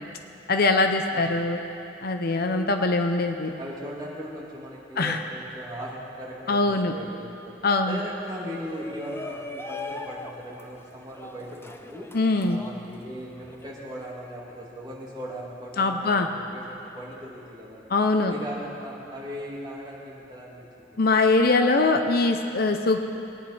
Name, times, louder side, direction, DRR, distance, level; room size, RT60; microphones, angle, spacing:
voice 1, 0.5-1.6 2.0-3.5 5.0-5.2 6.5-6.9 7.6-8.0 12.1-12.6 15.8-16.3 17.9-18.3 21.0-23.0, left 3 dB, 55° left, 6 dB, 0.7 m, -22 dB
voice 2, 1.1-1.4 3.6-7.6 7.8-12.1 12.4-17.8 18.3-21.0, equal, 25° right, -5 dB, 2.4 m, -38 dB
Shout, 8.6-13.7, left 2 dB, 15° left, 0.6 m, -40 dB
21.0 x 9.7 x 4.3 m, 2.8 s
head